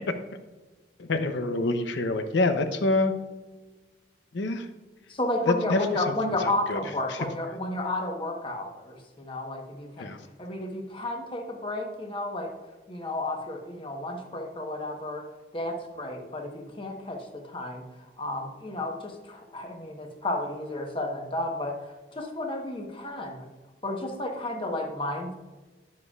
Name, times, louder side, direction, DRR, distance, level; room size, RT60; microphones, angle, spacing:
voice 1, 1.0-3.1 4.3-4.7 5.5-6.1 6.4-6.8 7.1-7.3 10.0-10.2, left 2 dB, 75° left, 8 dB, 0.7 m, -26 dB
voice 2, 5.1-10.1 10.4-12.5 12.9-15.2 15.5-17.8 18.2-23.5 23.8-25.4, left 1 dB, 30° left, 3 dB, 1.0 m, -32 dB
9.8 x 7.6 x 2.4 m, 1.2 s
head